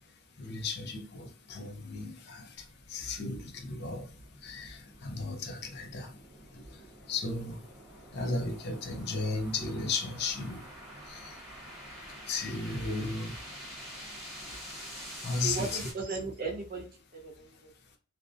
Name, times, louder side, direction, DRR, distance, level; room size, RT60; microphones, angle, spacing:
voice 1, 0.4-2.4 2.9-4.0 4.4-6.1 7.1-7.6 8.1-10.6 11.1-11.2 12.3-13.3 15.2-15.8, left 3 dB, 50° left, 0.5 m, -34 dB
sound 1, 2.6-15.9, equal, ahead, 1.0 m, -47 dB
voice 2, 15.4-16.9 17.1-17.7, right 4 dB, 40° right, 0.6 m, -36 dB
2.5 x 2.0 x 2.5 m
head